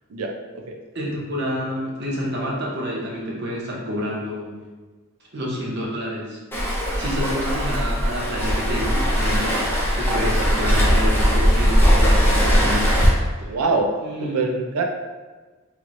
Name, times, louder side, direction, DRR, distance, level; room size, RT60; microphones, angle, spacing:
voice 1, 0.1-0.8 13.4-13.9 14.2-14.8, right 3 dB, 85° right, 2 dB, 0.5 m, -24 dB
voice 2, 0.9-4.6 5.3-13.1 13.4-13.6 14.0-14.5, equal, 50° right, -4 dB, 0.7 m, -29 dB
Waves surf, 6.5-13.1, equal, 10° left, 0.5 m, -19 dB
3.0 x 3.0 x 2.5 m, 1.3 s
head